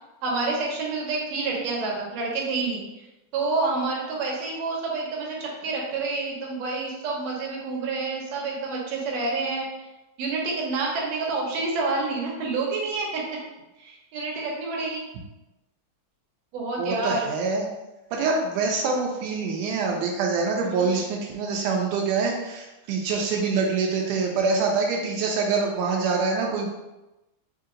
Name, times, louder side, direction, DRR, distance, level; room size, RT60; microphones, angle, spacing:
voice 1, 0.2-2.8 3.3-9.7 10.2-13.2 13.8-15.0 16.5-17.3 20.6-20.8, right 3 dB, 65° right, -3 dB, 2.0 m, -28 dB
voice 2, 16.8-17.7 18.1-26.7, right 4 dB, 85° right, 0 dB, 2.1 m, -25 dB
5.0 x 2.8 x 3.7 m, 0.99 s
omnidirectional pair, 3.5 m